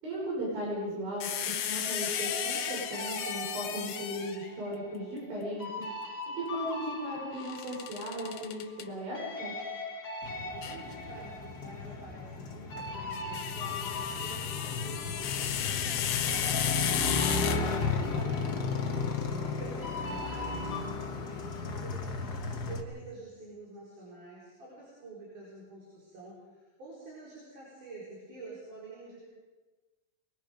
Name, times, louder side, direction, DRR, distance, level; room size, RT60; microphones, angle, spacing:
voice 1, 0.0-5.9 6.4-9.5, equal, 75° right, -4 dB, 7.3 m, -37 dB
sound 1, 1.2-4.5 7.4-8.8 10.6-10.8 12.9-18.1, left 9 dB, 70° left, 1.6 m, -34 dB
sound 2, 2.1-8.9 9.1-16.0 16.3-20.8, left 2 dB, 20° left, 3.8 m, -41 dB
Motorcycle, 10.2-22.8, left 4 dB, 90° left, 0.8 m, -34 dB
voice 2, 10.5-29.3, right 2 dB, 55° right, -6 dB, 6.0 m, -48 dB
23.0 x 22.0 x 5.2 m, 1.2 s
omnidirectional pair, 4.2 m